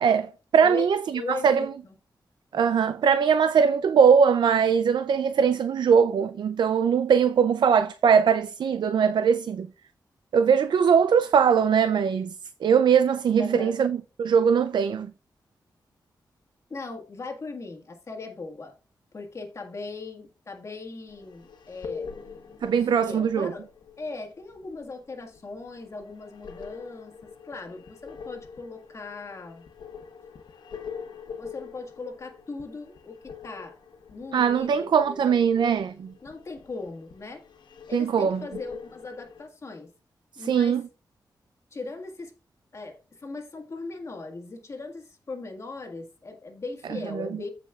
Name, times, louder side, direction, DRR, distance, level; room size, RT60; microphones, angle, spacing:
voice 1, 0.0-1.7 2.5-9.7 10.3-12.4 12.6-15.1 22.6-23.5 34.3-36.1 37.9-38.4 40.4-40.8 47.1-47.4, right 7 dB, 80° right, 0.4 m, -21 dB
voice 2, 1.1-1.7 13.4-13.7 16.7-18.7 19.1-22.1 22.8-23.7 24.0-29.7 31.4-33.2 33.4-33.7 34.1-35.7 36.2-37.4 37.9-39.9 40.3-40.8 41.7-42.3 42.7-47.5, left 3 dB, 40° left, 1.7 m, -38 dB
sound 1, 21.1-39.4, left 6 dB, 85° left, 1.1 m, -44 dB
14.5 x 5.1 x 2.4 m
wide cardioid pair, 140°, 8 cm